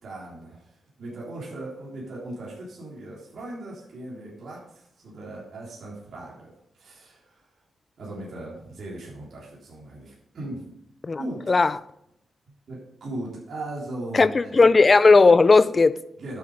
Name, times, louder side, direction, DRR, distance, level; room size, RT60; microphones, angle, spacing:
voice 1, 0.0-6.5 6.8-7.5 8.0-10.7 11.2-11.4 12.7-14.5 16.2-16.4, right 1 dB, 65° right, 3.5 m, -38 dB
voice 2, 14.1-16.0, left 3 dB, 30° left, 0.4 m, -16 dB
12.0 x 7.2 x 5.0 m
wide cardioid pair, 140°, 0 cm